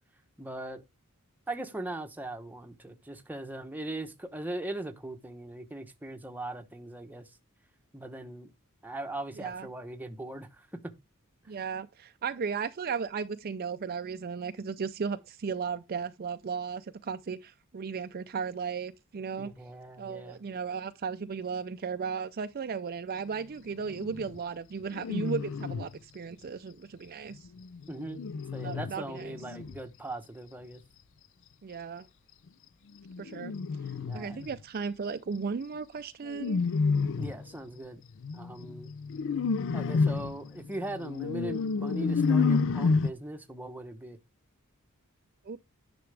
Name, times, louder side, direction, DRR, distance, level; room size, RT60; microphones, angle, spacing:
voice 1, 0.4-0.8 1.5-7.3 7.9-8.5 8.8-10.9 19.4-20.4 27.9-28.2 28.5-30.8 33.9-34.4 37.2-38.0 38.3-38.9 39.7-44.2, right 1 dB, 10° right, 0.9 m, -39 dB
voice 2, 11.5-19.5 20.0-27.5 28.6-29.3 31.6-32.1 33.2-33.5 34.1-36.6 45.4-45.6, right 5 dB, 45° right, 0.5 m, -35 dB
sound 1, 23.8-24.4 24.9-26.0 27.3-29.8 33.1-34.6 36.3-37.5 38.2-43.1, left 4 dB, 60° left, 0.4 m, -30 dB
10.0 x 6.0 x 3.3 m
head